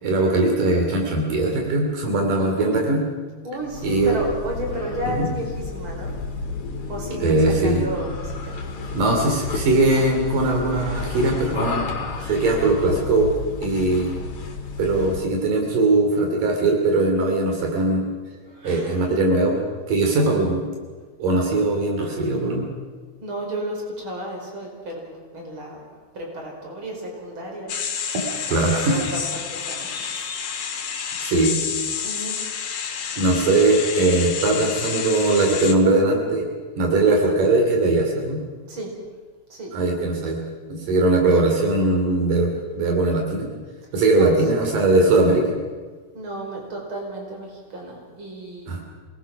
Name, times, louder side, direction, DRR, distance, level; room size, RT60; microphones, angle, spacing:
voice 1, 0.0-3.0 3.8-4.2 5.2-5.3 7.2-7.9 8.9-11.8 12.2-13.3 13.6-14.1 14.8-18.1 18.6-19.6 19.9-20.6 21.2-22.7 28.5-29.0 31.2-31.6 33.2-36.5 36.8-38.4 39.7-40.4 40.7-43.5 43.9-45.6 48.7-48.8, right 2 dB, 80° right, 1 dB, 4.6 m, -20 dB
voice 2, 2.4-2.8 3.4-6.1 6.9-7.4 7.6-8.5 18.4-19.1 20.1-20.4 23.2-25.8 26.1-27.7 28.5-29.9 31.1-31.6 32.0-32.4 33.0-33.3 38.7-38.9 39.5-39.7 44.1-44.4 46.1-48.7, right 1 dB, 40° right, 0 dB, 5.7 m, -33 dB
sound 1, 3.6-15.4, left 3 dB, 45° left, 3.2 m, -31 dB
sound 2, 27.7-35.7, left 7 dB, 85° left, 3.3 m, -29 dB
27.5 x 19.0 x 6.0 m, 1.4 s
omnidirectional pair, 3.7 m